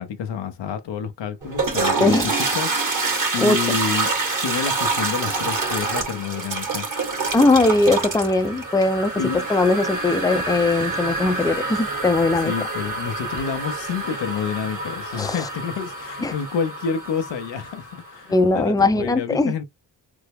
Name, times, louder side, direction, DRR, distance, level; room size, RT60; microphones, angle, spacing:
voice 1, 0.0-4.1 4.4-6.9 9.2-9.4 12.4-19.6, left 7 dB, 90° left, 0.7 m, -29 dB
Toilet flush, 1.4-18.2, right 3 dB, 45° right, 1.8 m, -27 dB
voice 2, 2.0-2.3 3.4-3.8 7.3-12.5 15.2-15.5 16.2-16.3 18.3-19.5, left 2 dB, 10° left, 0.5 m, -20 dB
3.5 x 2.0 x 3.4 m
cardioid pair, 50°, 42 cm